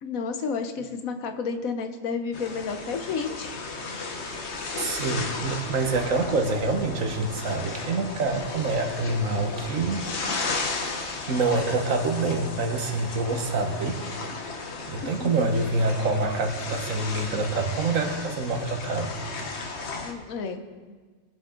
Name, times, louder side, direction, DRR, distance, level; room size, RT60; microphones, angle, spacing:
voice 1, 0.0-3.6 13.3-13.4 15.0-15.5 20.0-20.6, left 5 dB, 80° left, 7 dB, 1.4 m, -31 dB
sound 1, 2.3-20.1, left 3 dB, 55° left, 1.4 m, -35 dB
voice 2, 4.8-10.0 11.3-14.0 14.9-19.1, right 3 dB, 75° right, 5 dB, 1.6 m, -26 dB
21.0 x 7.7 x 3.8 m, 1.4 s
omnidirectional pair, 1.4 m